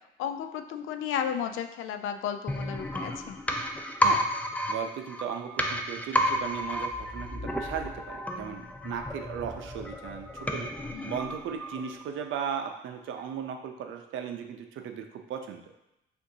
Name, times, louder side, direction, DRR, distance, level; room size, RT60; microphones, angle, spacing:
voice 1, 0.2-3.4 10.9-11.1, left 8 dB, 85° left, 7 dB, 0.4 m, -33 dB
sound 1, 2.5-12.2 12.5-12.6, equal, 5° left, 0.4 m, -32 dB
voice 2, 4.7-10.7 11.0-15.6, right 8 dB, 80° right, 5 dB, 0.6 m, -36 dB
6.5 x 2.6 x 2.7 m, 0.88 s
cardioid pair, 90°, 20 cm